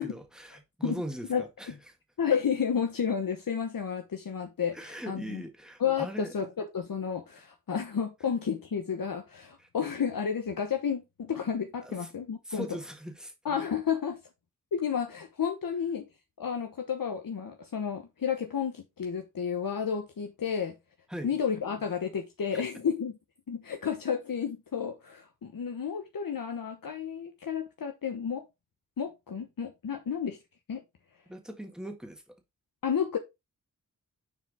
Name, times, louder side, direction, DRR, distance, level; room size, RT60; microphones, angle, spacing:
voice 1, 0.0-1.9 4.7-6.3 9.6-9.7 11.8-12.1 12.4-13.3 21.1-21.4 22.5-22.6 31.3-32.3, right 1 dB, ahead, 1.6 m, -40 dB
voice 2, 1.3-1.7 2.2-5.4 5.8-12.7 13.4-14.2 14.7-16.1 16.4-20.7 21.2-23.1 23.5-28.4 29.0-30.4 30.7-30.8 32.8-33.2, left 7 dB, 80° left, 1.0 m, -31 dB
6.6 x 4.7 x 3.6 m
cardioid pair, 55°, 34 cm